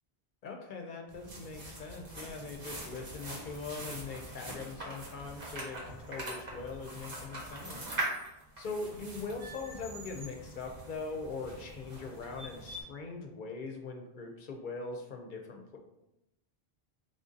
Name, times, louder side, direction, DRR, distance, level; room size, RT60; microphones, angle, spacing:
voice 1, 0.4-8.2 8.6-15.8, left 4 dB, 60° left, 3 dB, 0.6 m, -41 dB
sound 1, 1.1-12.8, right 1 dB, 60° right, 1.1 m, -43 dB
3.7 x 2.6 x 3.7 m, 0.89 s
omnidirectional pair, 1.0 m